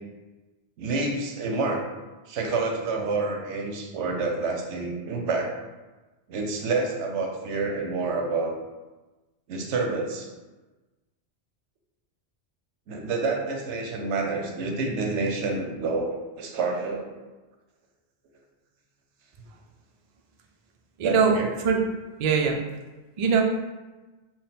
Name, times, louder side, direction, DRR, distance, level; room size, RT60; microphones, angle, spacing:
voice 1, 0.8-1.8 2.3-5.5 6.3-8.5 9.5-10.3 12.9-17.1 21.0-21.5, right 3 dB, 85° right, 2 dB, 0.9 m, -28 dB
voice 2, 21.0-21.8 22.2-22.6 23.2-23.4, right 5 dB, 60° right, 2 dB, 0.4 m, -22 dB
3.7 x 2.1 x 4.0 m, 1.2 s
omnidirectional pair, 1.2 m